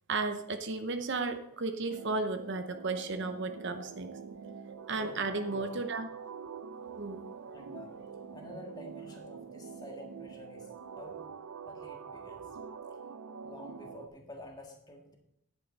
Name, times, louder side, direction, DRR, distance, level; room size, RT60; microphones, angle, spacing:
voice 1, 0.1-4.1 4.9-6.1 7.0-7.2, right 3 dB, 50° right, 8 dB, 0.7 m, -34 dB
sound 1, 1.9-14.1, right 6 dB, 90° right, 0.6 m, -45 dB
voice 2, 4.9-5.7 7.5-8.0 8.3-11.2 11.6-12.7 13.4-15.2, left 1 dB, 20° left, 1 dB, 1.7 m, -50 dB
10.5 x 9.2 x 4.1 m, 0.77 s
head